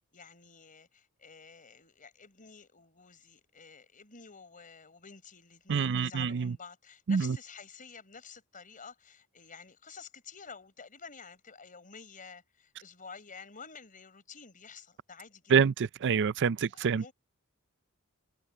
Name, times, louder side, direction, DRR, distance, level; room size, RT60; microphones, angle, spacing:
voice 1, 0.1-15.5 16.7-17.1, left 5 dB, 40° left, 4.7 m, -51 dB
voice 2, 5.7-6.6 7.1-7.4 15.5-17.0, right 6 dB, 55° right, 0.4 m, -26 dB
head